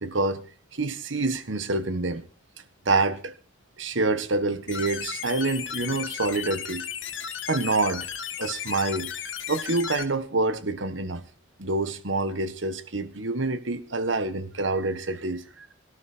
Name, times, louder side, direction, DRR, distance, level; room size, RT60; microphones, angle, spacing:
voice 1, 0.0-0.5 0.7-2.2 2.8-3.3 3.8-6.8 7.5-8.1 8.4-9.1 9.5-11.2 11.6-15.7, right 3 dB, 75° right, 1.5 m, -27 dB
sound 1, 4.7-10.0, left 8 dB, 75° left, 2.2 m, -35 dB
17.5 x 14.0 x 4.4 m
head